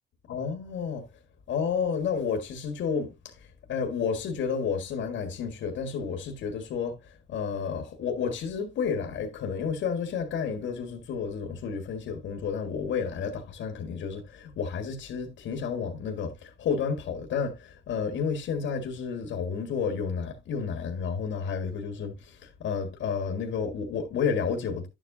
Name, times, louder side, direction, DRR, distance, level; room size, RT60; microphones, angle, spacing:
voice 1, 0.3-1.1 1.5-7.0 7.3-24.9, left 6 dB, 70° left, 1.7 m, -31 dB
11.0 x 7.5 x 2.7 m
cardioid pair, 90°, 20 cm